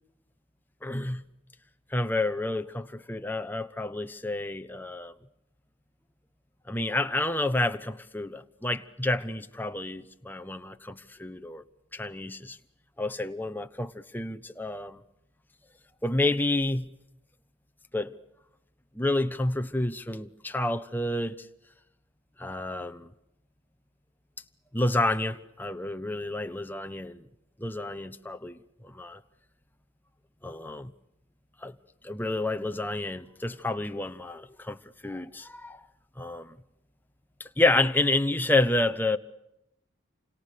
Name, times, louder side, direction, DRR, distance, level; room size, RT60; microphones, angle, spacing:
voice 1, 0.8-1.3 1.9-5.1 6.7-11.6 11.9-12.6 13.0-15.0 16.0-16.9 17.9-18.1 18.9-21.5 22.4-23.1 24.7-27.3 27.6-29.2 30.4-30.9 31.6-31.8 32.0-35.8 36.2-36.5 37.4-39.2, left 2 dB, 10° left, 0.9 m, -29 dB
28.5 x 26.0 x 6.7 m
head